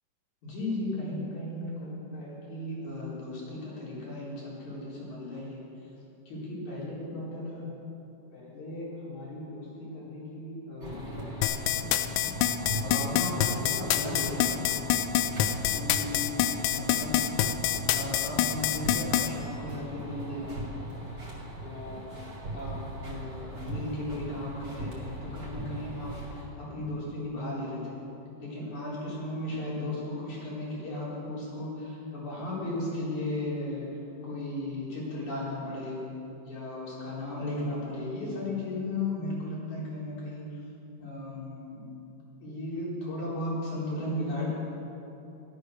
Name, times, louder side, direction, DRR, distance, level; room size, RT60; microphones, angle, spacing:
voice 1, 0.4-5.7 6.3-7.7 8.3-11.3 11.7-11.9 12.2-14.7 15.7-17.3 17.9-20.7 21.6-22.0 22.5-28.0 28.4-33.9 34.2-36.0 36.4-40.4 41.0-41.9 42.4-44.5, left 1 dB, 65° left, -6 dB, 5.5 m, -36 dB
sound 1, 10.8-26.4, right 1 dB, 35° right, 3.5 m, -39 dB
sound 2, 11.4-19.3, left 12 dB, 80° left, 2.2 m, -26 dB
16.0 x 12.5 x 6.4 m, 2.9 s
omnidirectional pair, 3.6 m